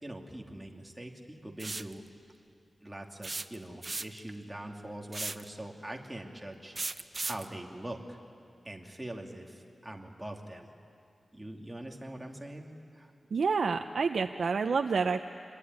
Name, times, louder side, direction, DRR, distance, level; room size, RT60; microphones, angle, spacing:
voice 1, 0.0-2.0 2.8-8.2 8.6-10.7 11.3-12.7 12.9-13.1, right 1 dB, 10° right, 1 dB, 2.8 m, -43 dB
sound 1, 1.6-1.9 3.2-4.3 5.1-5.5 6.8-7.5, right 3 dB, 40° right, 0.8 m, -36 dB
voice 2, 13.3-15.2, right 5 dB, 80° right, 5 dB, 0.7 m, -28 dB
26.0 x 21.5 x 9.7 m, 2.4 s
wide cardioid pair, 85°, 0 cm